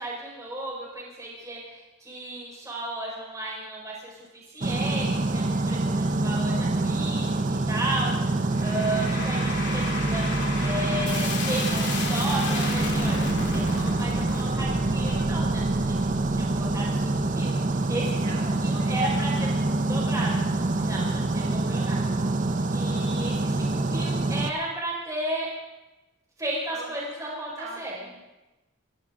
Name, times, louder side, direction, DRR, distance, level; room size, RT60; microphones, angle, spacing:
voice 1, 0.0-7.4 7.7-10.2 10.6-18.2 18.6-19.5 19.9-22.0 22.7-25.5 26.4-27.5 27.8-27.9, right 1 dB, 15° right, -4 dB, 5.2 m, -34 dB
sound 1, 4.6-24.5, right 2 dB, 35° right, 0.7 m, -26 dB
sound 2, 8.5-19.8, left 2 dB, 50° left, 3.1 m, -35 dB
voice 2, 18.1-19.5 26.7-28.1, right 2 dB, 65° right, -2 dB, 4.7 m, -42 dB
23.5 x 15.5 x 3.8 m, 1.1 s
head